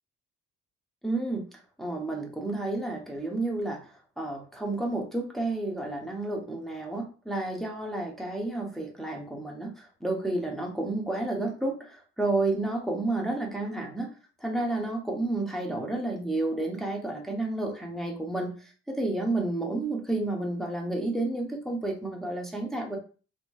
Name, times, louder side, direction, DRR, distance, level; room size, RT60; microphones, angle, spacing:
voice 1, 1.0-14.1 14.4-23.0, right 2 dB, ahead, -1 dB, 0.8 m, -31 dB
2.9 x 2.6 x 2.3 m, 0.37 s
cardioid pair, 90°, 30 cm